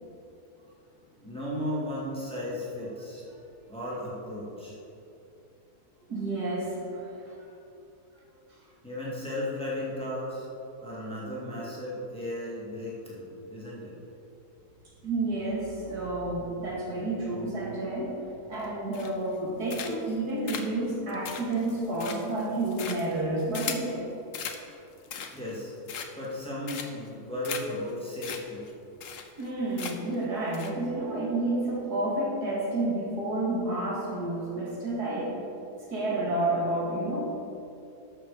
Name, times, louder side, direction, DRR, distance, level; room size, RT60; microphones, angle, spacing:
voice 1, 1.2-3.2 3.7-4.8 8.8-10.5 10.8-14.0 25.0-28.7, left 1 dB, 5° left, -7 dB, 2.5 m, -35 dB
voice 2, 6.1-7.5 15.0-18.2 18.5-24.1 29.4-35.4 35.9-37.2, right 2 dB, 80° right, -4 dB, 2.6 m, -30 dB
sound 1, 18.9-19.4 19.7-20.1 20.5-23.9 24.3-24.6 25.0-25.5 25.9-26.3 26.7-27.1 27.4-27.6 27.9-28.0 28.2-28.4 28.7-28.8 29.0-29.5 29.8-30.2 30.5-30.7, left 7 dB, 60° left, 1.1 m, -37 dB
12.5 x 6.6 x 5.1 m, 2.8 s
omnidirectional pair, 1.7 m